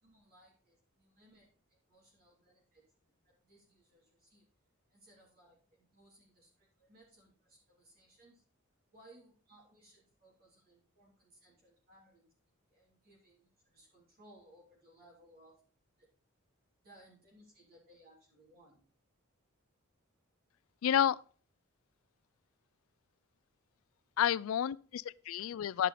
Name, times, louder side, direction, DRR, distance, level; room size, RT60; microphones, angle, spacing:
voice 1, 0.0-2.9 3.2-4.5 4.9-8.4 8.9-12.3 12.7-15.6 16.0-16.1 16.8-18.8, right 1 dB, 45° right, 3.1 m, -63 dB
voice 2, 20.8-21.2 24.2-25.9, left 9 dB, 70° left, 0.3 m, -30 dB
11.5 x 5.6 x 4.2 m
head